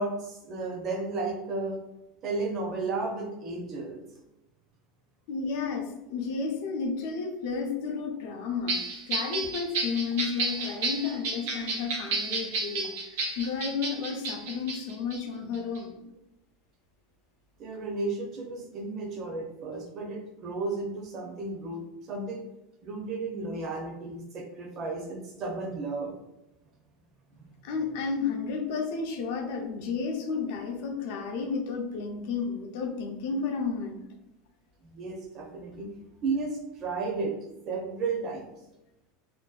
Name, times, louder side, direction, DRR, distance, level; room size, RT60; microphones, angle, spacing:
voice 1, 0.0-1.8 2.2-4.0 17.6-22.4 22.8-26.1 27.4-27.5 34.9-35.9 36.2-37.3 37.7-38.5, right 3 dB, 35° right, 1 dB, 0.5 m, -33 dB
voice 2, 5.3-8.8 9.1-12.9 13.4-16.0 27.6-34.0, left 5 dB, 65° left, 3 dB, 0.4 m, -32 dB
sound 1, 8.7-15.2 15.5-15.8, right 3 dB, 75° right, 0.7 m, -32 dB
2.6 x 2.2 x 2.3 m, 0.93 s
supercardioid pair, 160°, 0 cm